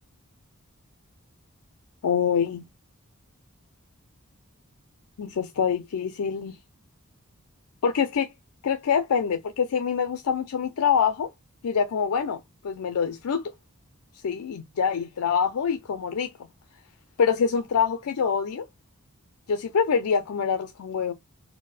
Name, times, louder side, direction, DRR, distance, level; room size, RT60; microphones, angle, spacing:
voice 1, 2.0-2.6 5.2-6.6 7.8-8.3 8.6-11.3 11.6-13.5 14.2-16.3 17.2-18.7 19.5-21.1, left 6 dB, 85° left, 0.4 m, -25 dB
4.2 x 2.1 x 2.4 m
head